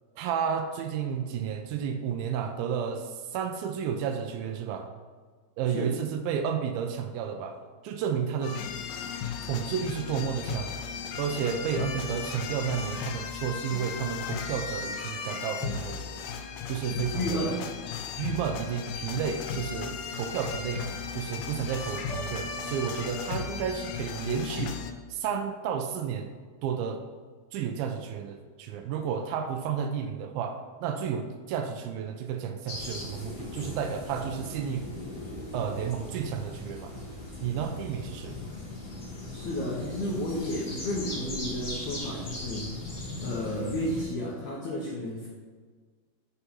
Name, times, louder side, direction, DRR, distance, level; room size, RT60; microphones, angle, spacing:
voice 1, 0.2-4.9 5.6-7.6 7.8-8.6 9.4-10.7 11.2-16.0 16.7-17.6 18.2-24.8 25.1-26.3 26.6-27.0 27.5-34.9 35.3-37.0 37.4-38.4, right 7 dB, 80° right, 6 dB, 2.1 m, -32 dB
sound 1, 8.4-24.9, left 7 dB, 90° left, 1.9 m, -36 dB
voice 2, 17.1-17.7 39.3-42.7 43.2-45.3, left 1 dB, 65° left, -4 dB, 1.9 m, -32 dB
sound 2, 22.1-25.1, right 4 dB, 55° right, 2.6 m, -47 dB
sound 3, 32.7-44.0, left 2 dB, 25° left, 1.5 m, -39 dB
6.8 x 4.5 x 5.6 m, 1.5 s
omnidirectional pair, 4.6 m